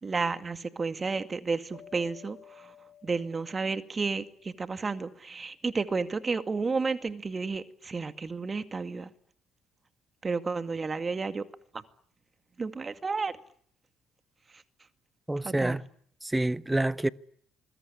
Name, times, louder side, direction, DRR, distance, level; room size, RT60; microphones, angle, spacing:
voice 1, 0.0-2.7 3.0-9.1 10.2-11.5 11.7-11.8 12.6-13.4 15.4-15.8, right 4 dB, 30° right, 2.2 m, -32 dB
sound 1, 1.7-4.7, left 9 dB, 55° left, 7.3 m, -54 dB
voice 2, 15.3-15.8 16.2-17.1, right 1 dB, 10° right, 1.2 m, -27 dB
26.0 x 22.0 x 9.9 m
hypercardioid pair, 55°, 0 cm